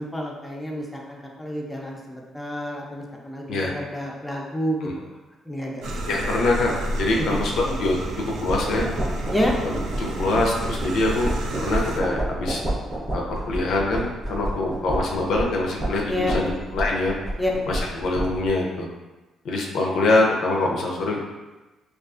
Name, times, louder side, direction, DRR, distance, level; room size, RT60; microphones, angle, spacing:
voice 1, 0.0-4.9 5.5-5.8 7.2-7.4 9.3-9.5 16.1-16.5 17.4-17.5, equal, 5° left, -2 dB, 0.4 m, -28 dB
sound 1, 5.8-12.0, right 1 dB, 70° right, 0.3 m, -30 dB
voice 2, 6.1-8.0 8.4-8.9 9.6-11.3 11.6-12.6 13.1-17.2 17.7-18.9 19.4-21.2, left 2 dB, 75° left, -1 dB, 0.4 m, -24 dB
sound 2, 8.5-18.5, right 1 dB, 30° right, 0.7 m, -30 dB
2.4 x 2.3 x 2.4 m, 1.1 s
cardioid pair, 90°, 0 cm